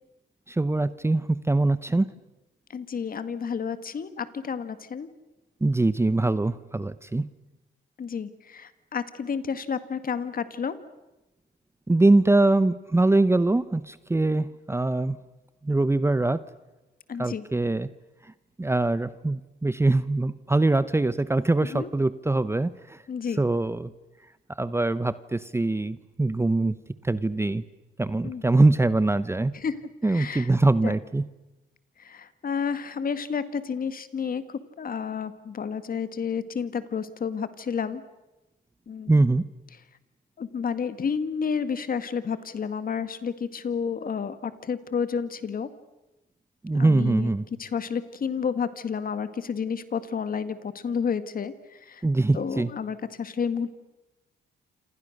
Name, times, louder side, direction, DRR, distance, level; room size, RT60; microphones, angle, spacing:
voice 1, 0.5-2.1 5.6-7.3 11.9-15.2 15.6-16.4 17.2-17.9 18.6-23.0 23.4-23.9 24.6-26.7 27.0-27.6 28.0-29.5 30.0-31.2 39.1-39.4 46.6-47.4 52.0-52.7, right 2 dB, 15° right, 15 dB, 0.8 m, -23 dB
voice 2, 2.7-5.1 8.0-10.8 17.1-17.4 21.6-21.9 23.1-23.4 28.2-28.4 29.5-29.7 30.1-30.5 30.8-30.9 32.0-38.0 38.9-39.2 40.4-45.7 46.7-47.3 47.6-51.5 51.9-52.0 52.3-53.7, left 6 dB, 45° left, 12 dB, 1.9 m, -30 dB
28.0 x 26.5 x 6.6 m, 1.0 s
cardioid pair, 90°, 20 cm